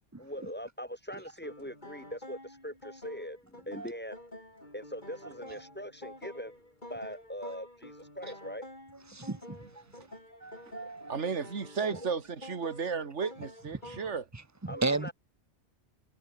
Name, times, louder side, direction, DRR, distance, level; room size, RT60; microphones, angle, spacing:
voice 1, 0.2-4.2 4.7-6.6 6.9-8.7 10.0-10.1 10.8-10.9 11.9-12.1 14.7-15.1, equal, 10° left, 8.0 m, -41 dB
sound 1, 1.4-14.2, left 1 dB, 40° left, 7.9 m, -49 dB
voice 2, 9.1-9.6 10.4-11.2 14.3-15.1, right 3 dB, 15° right, 1.1 m, -34 dB
voice 3, 11.1-14.2, right 5 dB, 70° right, 2.1 m, -34 dB
omnidirectional pair, 1.3 m